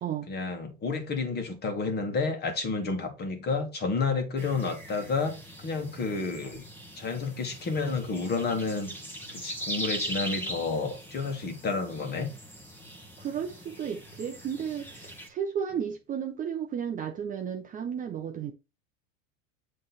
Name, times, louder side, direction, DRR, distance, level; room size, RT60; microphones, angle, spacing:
voice 1, 0.3-6.6 7.0-8.9 9.3-12.3, left 4 dB, 25° left, 1.6 m, -30 dB
sound 1, 4.4-15.3, right 1 dB, 5° left, 1.3 m, -40 dB
voice 2, 13.2-18.5, right 8 dB, 20° right, 0.6 m, -33 dB
7.6 x 3.3 x 4.1 m
supercardioid pair, 130°, 39 cm